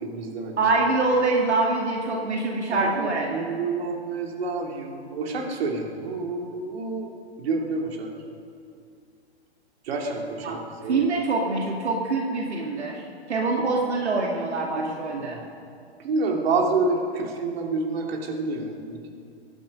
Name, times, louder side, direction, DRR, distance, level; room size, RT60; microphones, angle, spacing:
voice 1, 0.0-0.6 2.7-7.1 7.4-8.1 9.8-11.1 14.8-15.4 16.0-19.0, right 3 dB, 65° right, 1 dB, 2.9 m, -28 dB
voice 2, 0.6-3.4 10.4-10.6 10.8-13.0 13.3-15.4, right 3 dB, 85° right, -1 dB, 2.3 m, -24 dB
23.0 x 11.5 x 5.4 m, 2.4 s
hypercardioid pair, 125°, 33 cm